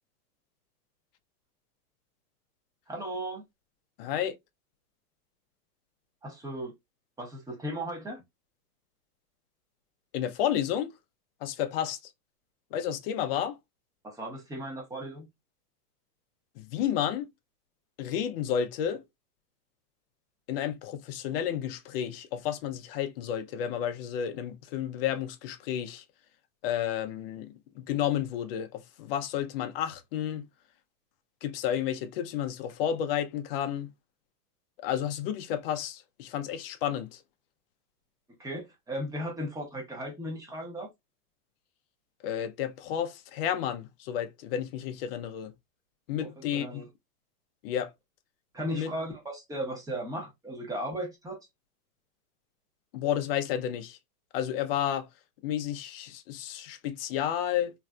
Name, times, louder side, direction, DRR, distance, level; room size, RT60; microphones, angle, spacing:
voice 1, 2.9-3.4 6.2-6.7 7.2-8.2 14.0-15.3 38.4-40.9 46.2-46.9 48.5-51.4, right 1 dB, 10° right, 0.8 m, -36 dB
voice 2, 4.0-4.4 10.1-10.9 11.4-12.0 12.7-13.6 16.6-17.3 18.0-19.0 20.5-26.0 26.6-30.5 31.4-33.9 34.8-37.2 42.2-45.5 46.1-46.8 47.6-47.9 48.7-48.9 52.9-54.0 54.3-55.1 55.4-57.7, left 10 dB, 40° left, 0.5 m, -31 dB
3.1 x 2.6 x 2.3 m
hypercardioid pair, 130°, 46 cm